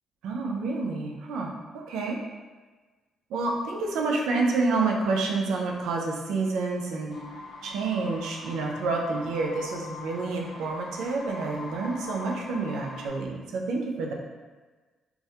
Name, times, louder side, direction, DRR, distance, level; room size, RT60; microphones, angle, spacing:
voice 1, 0.2-1.5 1.9-2.2 3.3-7.1 7.6-14.1, right 3 dB, 85° right, 0 dB, 0.3 m, -28 dB
sound 1, 7.1-13.1, left 2 dB, 70° left, 0.5 m, -42 dB
2.3 x 2.0 x 2.7 m, 1.3 s
cardioid pair, 90°, 0 cm